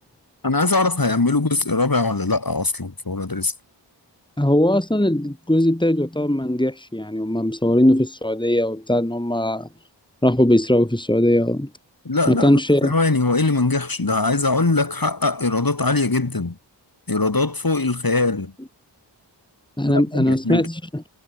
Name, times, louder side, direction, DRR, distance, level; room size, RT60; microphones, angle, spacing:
voice 1, 0.4-3.5 12.1-16.6 17.1-18.5 19.9-20.7, left 3 dB, 50° left, 6.8 m, -21 dB
voice 2, 4.4-9.7 10.2-11.7 12.3-12.9 19.8-21.0, left 1 dB, 10° left, 3.8 m, -19 dB
wide cardioid pair, 70°, 44 cm